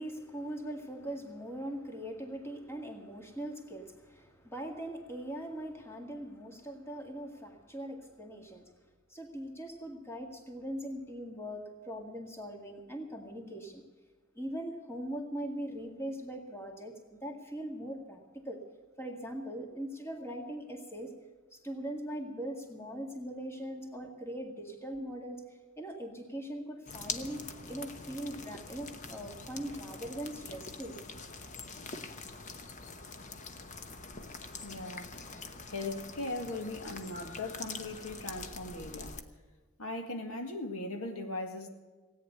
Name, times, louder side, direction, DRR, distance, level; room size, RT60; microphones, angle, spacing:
voice 1, 0.0-8.6 9.1-13.8 14.4-16.9 17.2-18.6 19.0-21.1 21.5-30.9, right 1 dB, 10° left, 3 dB, 2.0 m, -41 dB
sound 1, 26.9-39.2, left 4 dB, 35° left, 1.0 m, -44 dB
voice 2, 34.6-35.2 35.6-39.2 39.8-41.7, left 2 dB, 75° left, 5 dB, 1.9 m, -39 dB
17.5 x 9.5 x 8.0 m, 1.4 s
head